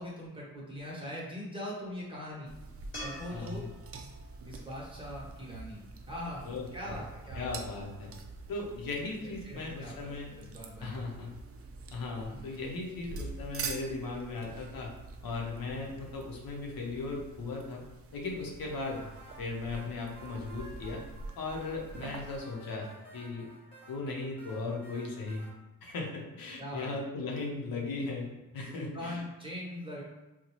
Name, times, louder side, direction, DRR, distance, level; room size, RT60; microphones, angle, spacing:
voice 1, 0.0-2.5 3.0-3.7 4.4-5.8 6.1-7.5 9.2-9.9 10.3-11.0 12.3-12.4 26.6-26.9 28.8-30.0, equal, 15° right, -5 dB, 1.1 m, -41 dB
sound 1, 2.5-22.4, right 4 dB, 45° right, 0.4 m, -46 dB
sound 2, 2.9-6.2 9.4-9.5, left 1 dB, 35° left, 1.3 m, -48 dB
voice 2, 3.3-3.7 6.5-7.0 7.3-8.1 8.5-10.3 10.8-11.4 11.9-14.9 15.2-17.8 18.1-19.1 19.4-21.0 21.4-23.5 23.9-25.5 25.8-29.2, left 3 dB, 80° left, 0 dB, 0.8 m, -37 dB
sound 3, 18.6-25.5, right 1 dB, 15° left, 1.0 m, -54 dB
4.0 x 2.2 x 3.0 m, 1.0 s
wide cardioid pair, 115°, 34 cm